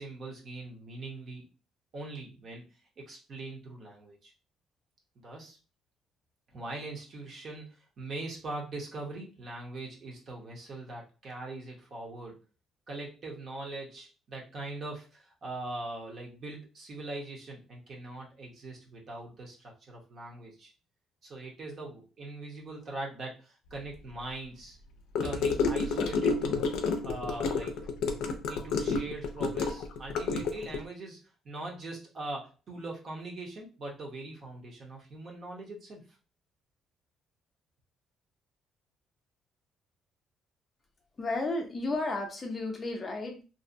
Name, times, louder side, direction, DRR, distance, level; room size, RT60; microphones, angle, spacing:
voice 1, 0.0-1.4 1.9-2.6 3.0-4.3 5.2-5.6 6.5-12.4 12.9-20.7 21.2-24.8 25.2-27.7 28.5-36.2, right 2 dB, 40° right, -2 dB, 0.8 m, -41 dB
Gurgling / Car passing by / Sink (filling or washing), 25.1-30.8, left 4 dB, 90° left, 0.4 m, -30 dB
voice 2, 41.2-43.4, left 2 dB, 25° left, 2 dB, 0.5 m, -33 dB
2.6 x 2.1 x 2.5 m, 0.33 s
cardioid pair, 145°, 0 cm